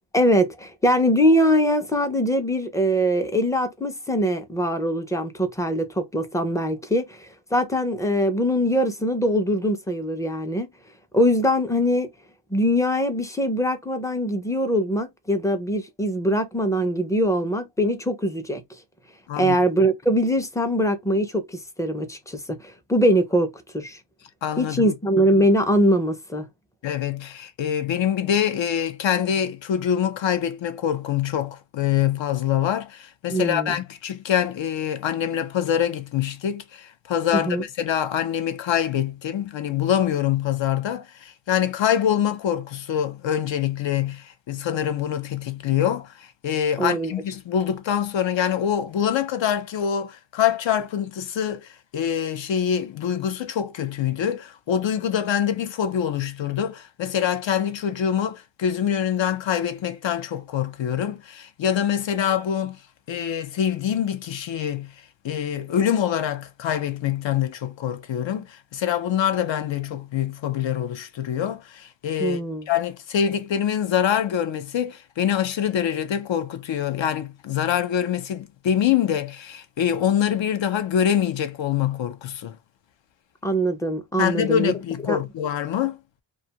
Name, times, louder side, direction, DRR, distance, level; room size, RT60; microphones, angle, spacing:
voice 1, 0.1-10.7 11.1-12.1 12.5-18.6 19.4-24.0 24.6-26.5 33.3-33.8 37.3-37.6 46.8-47.1 72.2-72.6 83.4-84.7 85.1-85.2, equal, 5° left, 0.4 m, -22 dB
voice 2, 24.4-24.9 26.8-62.8 63.1-72.4 72.7-82.6 84.2-86.0, left 9 dB, 70° left, 0.6 m, -25 dB
2.6 x 2.3 x 2.8 m
wide cardioid pair, 160°, 47 cm